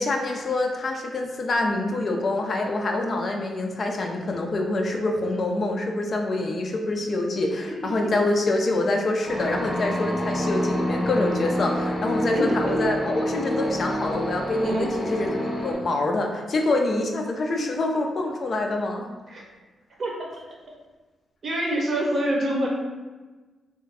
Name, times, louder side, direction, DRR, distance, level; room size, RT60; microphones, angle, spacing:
voice 1, 0.0-19.1, left 2 dB, 40° left, 2 dB, 0.3 m, -26 dB
sound 1, 9.2-15.7, equal, 10° right, 0.7 m, -27 dB
voice 2, 12.3-12.9 14.6-14.9 17.5-17.7 19.3-19.4 20.0-20.4 21.4-22.7, right 1 dB, 45° right, -2 dB, 0.7 m, -26 dB
2.4 x 2.3 x 3.3 m, 1.3 s
wide cardioid pair, 140°, 0 cm